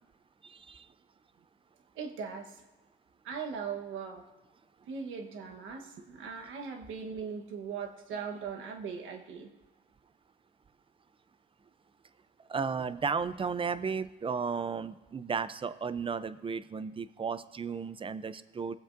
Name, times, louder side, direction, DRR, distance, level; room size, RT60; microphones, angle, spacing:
voice 1, 0.4-0.9 12.5-18.7, right 5 dB, 25° right, 14 dB, 0.5 m, -34 dB
voice 2, 2.0-2.6 3.2-4.2 4.9-9.5, right 6 dB, 85° right, 3 dB, 1.2 m, -39 dB
17.5 x 7.8 x 2.6 m, 1.2 s
cardioid pair, 90°, 20 cm